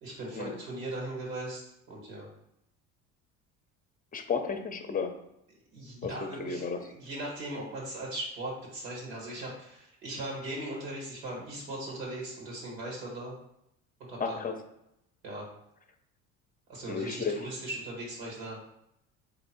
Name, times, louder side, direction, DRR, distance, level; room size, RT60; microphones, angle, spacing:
voice 1, 0.0-2.3 5.7-13.3 14.1-14.4 15.2-15.5 16.7-18.6, right 1 dB, 90° right, -2 dB, 1.4 m, -39 dB
voice 2, 4.1-5.2 6.0-6.9 14.2-14.6 16.9-17.4, left 5 dB, 20° left, 6 dB, 0.6 m, -33 dB
3.5 x 2.9 x 4.1 m, 0.81 s
hypercardioid pair, 70°, 39 cm